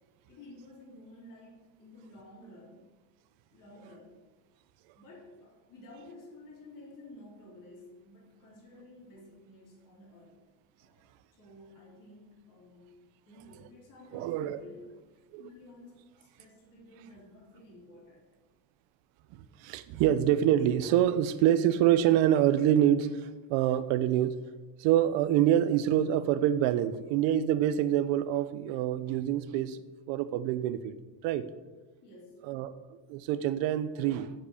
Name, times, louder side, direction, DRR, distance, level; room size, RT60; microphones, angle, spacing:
voice 1, 0.3-2.8 3.5-4.1 4.9-10.4 10.8-13.0 13.3-14.9 15.4-18.2 32.0-32.5, left 1 dB, 40° left, -4 dB, 3.8 m, -52 dB
voice 2, 14.1-14.6 15.3-15.5 19.3-24.3 24.8-29.8 30.1-30.9 31.2-31.5 32.4-32.7 33.1-34.3, right 11 dB, 65° right, 13 dB, 0.9 m, -26 dB
8.2 x 8.0 x 8.5 m, 1.2 s
cardioid pair, 155°, 50 cm